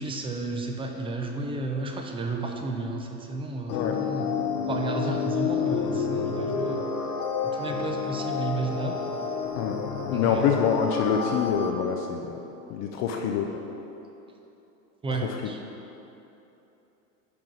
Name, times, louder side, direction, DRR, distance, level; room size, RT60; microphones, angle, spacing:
voice 1, 0.0-4.4 4.7-6.9 7.4-9.0 10.1-10.5 15.0-15.6, right 3 dB, 10° right, 3 dB, 0.6 m, -32 dB
sound 1, 3.7-11.7, left 5 dB, 65° left, 1.1 m, -29 dB
voice 2, 9.6-12.4 12.7-13.6, left 7 dB, 35° left, 2 dB, 0.6 m, -26 dB
10.5 x 3.7 x 6.2 m, 3.0 s
hypercardioid pair, 110°, 47 cm